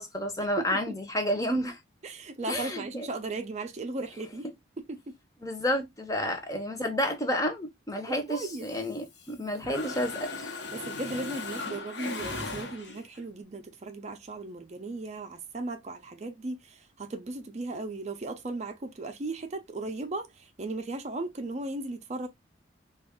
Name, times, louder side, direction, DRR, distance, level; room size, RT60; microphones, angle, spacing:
voice 1, 0.0-1.8 2.5-3.1 5.4-10.6, equal, 20° left, 0.7 m, -30 dB
voice 2, 0.6-0.9 2.0-4.5 4.9-5.1 8.1-8.7 10.7-22.3, right 2 dB, 35° right, 0.4 m, -36 dB
Mechanisms, 8.4-9.3 9.6-13.2, left 3 dB, 65° left, 0.9 m, -38 dB
3.5 x 2.4 x 3.5 m
head